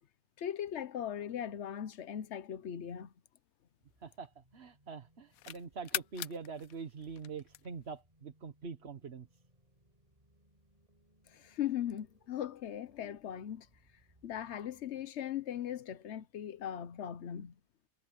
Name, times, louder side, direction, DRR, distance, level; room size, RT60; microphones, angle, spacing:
voice 1, 0.4-3.1 11.3-13.7 14.2-17.5, left 10 dB, 55° left, 1.0 m, -39 dB
sound 1, 2.9-4.6 5.0-8.0, left 14 dB, 85° left, 1.1 m, -43 dB
sound 2, 3.8-15.1, equal, 25° right, 8.1 m, -70 dB
voice 2, 4.0-9.3, right 5 dB, 50° right, 1.6 m, -44 dB
omnidirectional pair, 1.5 m